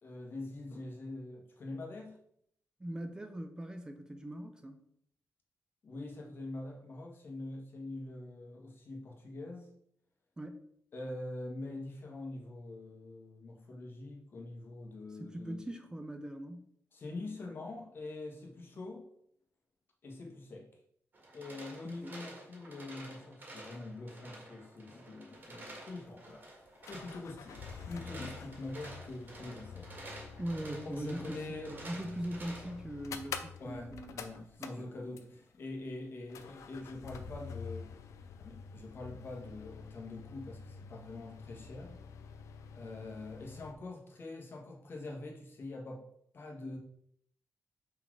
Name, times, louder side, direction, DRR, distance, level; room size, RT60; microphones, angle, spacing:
voice 1, 0.0-2.2 5.8-9.7 10.9-15.6 16.9-19.1 20.0-20.7 21.3-26.4 26.9-30.1 30.8-31.8 33.6-37.9 38.4-42.0 42.7-46.1 46.3-46.8, left 2 dB, 45° left, 0 dB, 1.5 m, -44 dB
voice 2, 2.8-4.8 10.4-10.6 15.2-16.7 22.0-22.1 30.4-34.9, right 1 dB, 15° right, 6 dB, 0.6 m, -41 dB
sound 1, 21.1-32.8, right 1 dB, 40° right, 1.8 m, -50 dB
sound 2, 25.3-25.4 25.6-25.7 26.6-35.6 36.3-43.7, left 6 dB, 85° left, 0.6 m, -48 dB
5.7 x 4.2 x 4.7 m, 0.69 s
wide cardioid pair, 135°, 5 cm